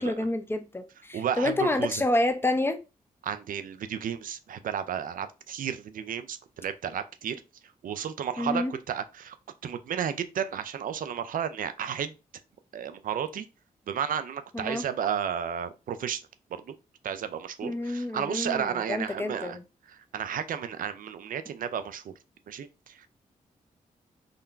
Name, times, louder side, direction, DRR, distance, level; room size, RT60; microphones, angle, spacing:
voice 1, 0.0-2.8 8.4-8.7 14.5-14.8 17.6-19.6, left 2 dB, 15° left, 0.6 m, -28 dB
voice 2, 1.1-2.0 3.2-7.4 7.8-9.4 9.6-12.2 12.7-13.5 13.9-16.2 16.5-16.7 17.0-19.6 19.9-22.1 22.5-23.1, right 8 dB, 65° right, 0.4 m, -33 dB
3.7 x 2.2 x 2.5 m
cardioid pair, 55°, 15 cm